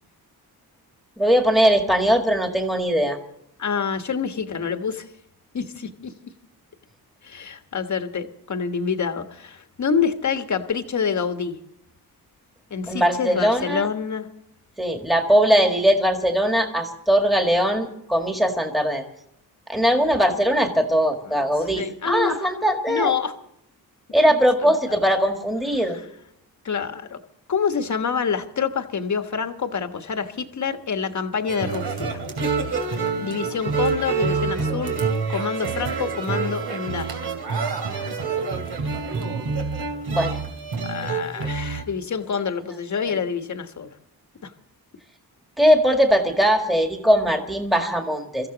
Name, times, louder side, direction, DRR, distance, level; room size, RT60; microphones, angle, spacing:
voice 1, 1.2-3.2 12.9-13.9 14.8-19.0 19.7-23.1 24.1-26.0 40.1-40.4 43.0-43.2 45.6-48.5, equal, ahead, 4 dB, 1.9 m, -20 dB
voice 2, 3.6-5.1 5.5-6.1 7.2-11.6 12.7-14.3 21.3-21.4 21.7-22.5 22.9-23.3 24.6-25.0 25.8-25.9 26.6-27.2 27.5-32.2 33.2-34.9 35.3-37.3 40.8-43.9 44.4-44.5, left 6 dB, 50° left, 8 dB, 1.4 m, -27 dB
sound 1, 31.5-41.8, right 5 dB, 80° right, 3.0 m, -27 dB
23.5 x 14.5 x 4.0 m, 0.75 s
cardioid pair, 105°, 38 cm